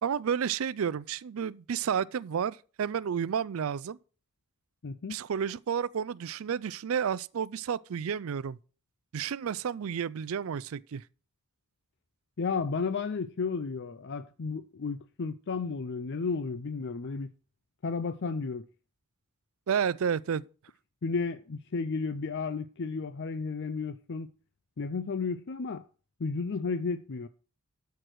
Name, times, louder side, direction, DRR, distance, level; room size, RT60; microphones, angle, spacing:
voice 1, 0.0-4.0 5.1-8.6 9.1-11.0 19.7-20.4, right 7 dB, 65° right, 0.4 m, -31 dB
voice 2, 4.8-5.2 12.4-17.3 17.8-18.6 21.0-24.3 24.8-25.9 26.2-27.3, left 4 dB, 50° left, 0.5 m, -33 dB
12.5 x 4.6 x 6.2 m
head